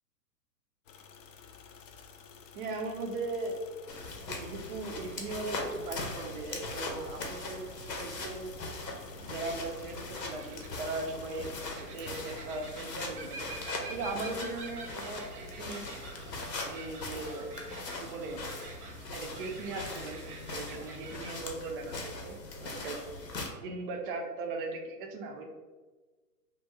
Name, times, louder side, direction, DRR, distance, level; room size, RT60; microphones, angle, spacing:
sound 1, 0.9-11.7, left 6 dB, 55° left, 0.5 m, -53 dB
voice 1, 2.5-3.6 4.3-8.5 9.2-13.5 13.9-15.9 16.6-17.5 18.0-18.4 19.1-23.0 23.6-25.5, right 3 dB, 35° right, 3 dB, 0.4 m, -38 dB
sound 2, 3.9-23.5, left 3 dB, 85° left, 0.8 m, -41 dB
sound 3, 5.0-21.4, right 3 dB, 65° right, 0.8 m, -49 dB
2.6 x 2.2 x 3.7 m, 1.3 s
hypercardioid pair, 115°, 49 cm